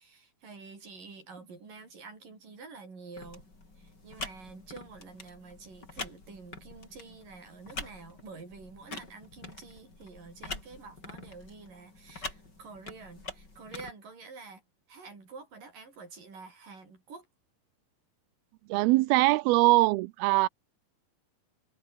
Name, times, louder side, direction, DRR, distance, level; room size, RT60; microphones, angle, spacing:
voice 1, 0.0-3.5 3.8-14.6 14.9-17.3, right 4 dB, 60° right, 8.5 m, -48 dB
sound 1, 3.2-13.9, left 2 dB, 25° left, 6.2 m, -45 dB
voice 2, 18.7-20.5, right 21 dB, 85° right, 2.5 m, -22 dB
omnidirectional pair, 4.5 m